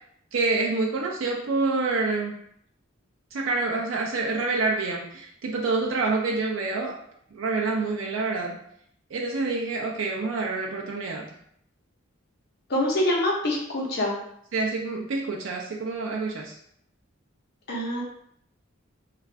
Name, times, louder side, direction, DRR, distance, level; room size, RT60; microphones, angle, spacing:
voice 1, 0.3-2.4 3.3-7.0 7.3-8.6 9.1-11.3 14.5-16.5, right 3 dB, 65° right, 0 dB, 0.4 m, -27 dB
voice 2, 12.7-14.1 17.7-18.0, left 1 dB, 50° left, -3 dB, 0.8 m, -25 dB
2.5 x 2.3 x 3.2 m, 0.69 s
head